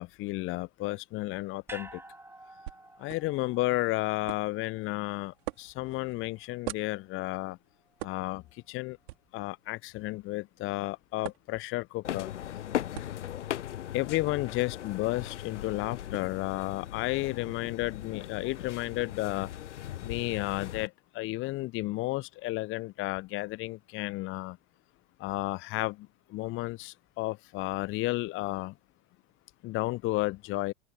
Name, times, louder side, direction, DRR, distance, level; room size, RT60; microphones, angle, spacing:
voice 1, 0.0-2.0 3.0-7.6 8.0-8.4 8.7-9.0 9.3-12.3 13.9-19.5 20.0-24.6 25.2-28.7 29.6-30.7, left 19 dB, 35° left, 0.9 m, -32 dB
sound 1, 1.7-6.0 6.3-6.4, right 2 dB, 5° right, 3.7 m, -50 dB
sound 2, 2.7-20.4, right 19 dB, 55° right, 5.9 m, -49 dB
sound 3, 12.0-20.9, left 11 dB, 70° left, 1.0 m, -38 dB
open air
figure-of-eight pair, 80°, 37 cm